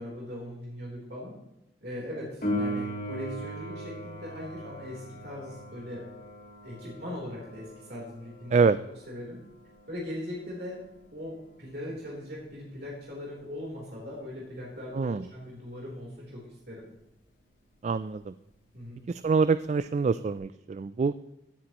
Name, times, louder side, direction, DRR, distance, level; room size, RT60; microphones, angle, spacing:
voice 1, 0.0-1.4 1.8-6.0 6.6-8.7 9.1-9.4 9.9-10.8 11.1-16.9 18.7-19.0, left 1 dB, 65° right, -4 dB, 3.6 m, -40 dB
Piano, 2.4-12.8 20.4-20.5, equal, 55° left, 4.4 m, -39 dB
voice 2, 14.9-15.2 17.8-18.3 19.1-21.1, right 4 dB, 40° right, 14 dB, 0.3 m, -25 dB
16.0 x 9.4 x 3.0 m, 0.91 s
head